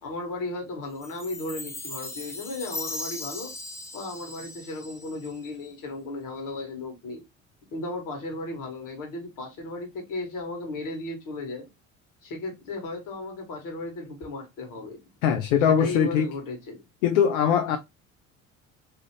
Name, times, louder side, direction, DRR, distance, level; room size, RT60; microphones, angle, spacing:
voice 1, 0.0-3.5 3.9-7.2 7.7-11.7 12.2-15.0 15.7-16.8, left 2 dB, 55° left, 1.6 m, -35 dB
Chime, 1.0-5.5, left 2 dB, 10° left, 0.4 m, -38 dB
voice 2, 15.2-16.3 17.0-17.8, left 8 dB, 70° left, 0.5 m, -21 dB
2.9 x 2.5 x 3.0 m
figure-of-eight pair, 60°, 39 cm